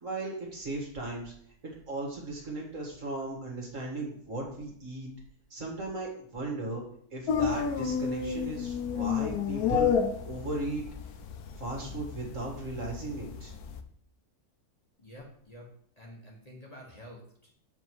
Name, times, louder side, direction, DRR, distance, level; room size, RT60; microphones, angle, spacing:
voice 1, 0.0-1.3 1.6-5.1 5.5-6.8 7.1-9.9 10.3-10.8 11.6-13.5, right 2 dB, 55° right, -1 dB, 2.2 m, -36 dB
sound 1, 7.3-13.8, left 7 dB, 80° left, 1.1 m, -31 dB
voice 2, 15.0-15.6 16.0-17.5, equal, 25° left, -3 dB, 1.4 m, -49 dB
7.0 x 5.2 x 4.7 m, 0.62 s
omnidirectional pair, 1.6 m